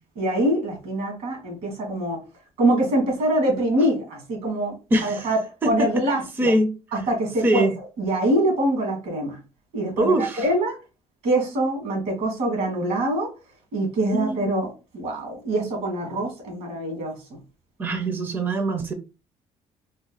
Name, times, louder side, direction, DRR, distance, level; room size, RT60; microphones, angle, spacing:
voice 1, 0.2-2.2 2.6-4.8 5.0-5.4 5.6-6.5 6.9-9.4 9.7-10.8 11.2-13.3 13.7-17.2, right 1 dB, 85° right, 1 dB, 2.1 m, -24 dB
voice 2, 4.9-5.3 5.6-6.0 6.4-6.7 7.4-7.7 10.0-10.5 14.1-14.4 17.8-18.9, right 1 dB, 20° right, 6 dB, 0.5 m, -23 dB
4.0 x 2.2 x 3.8 m, 0.31 s
cardioid pair, 170°, 11 cm